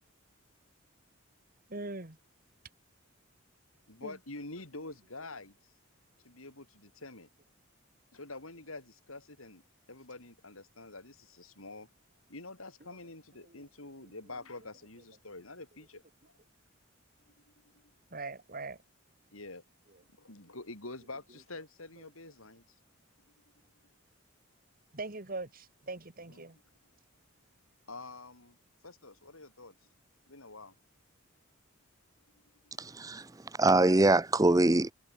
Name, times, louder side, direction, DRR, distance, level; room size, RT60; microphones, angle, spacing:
voice 1, 1.7-2.2 4.0-4.1 13.4-13.6 18.1-18.8 24.9-26.6, right 3 dB, 40° right, 1.9 m, -41 dB
voice 2, 3.9-5.5 6.2-7.3 8.1-9.6 9.9-11.9 12.3-16.0 19.3-19.6 20.2-22.6 26.3-26.5 27.9-28.6 28.8-29.8 30.3-30.7, left 2 dB, 80° left, 5.6 m, -46 dB
voice 3, 32.8-33.3 33.6-34.9, right 2 dB, 15° right, 0.6 m, -23 dB
head